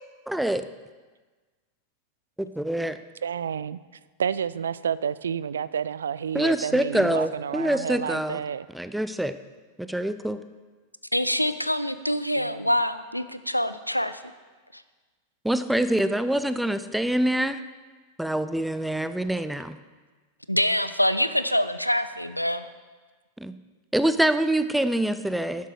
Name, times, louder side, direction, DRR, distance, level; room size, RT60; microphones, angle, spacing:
voice 1, 0.3-0.6 2.4-3.0 6.3-8.4 8.7-9.3 9.9-10.4 15.4-17.6 18.2-19.8 23.4-23.5 23.9-25.7, right 1 dB, 5° right, 12 dB, 0.6 m, -25 dB
voice 2, 3.2-3.8 4.2-8.7 12.3-12.7, right 7 dB, 65° right, 17 dB, 0.3 m, -30 dB
voice 3, 11.1-14.2 14.7-14.8 20.5-22.7, equal, 90° left, 12 dB, 0.5 m, -25 dB
11.5 x 11.0 x 4.8 m, 1.3 s
figure-of-eight pair, 90°, 0 cm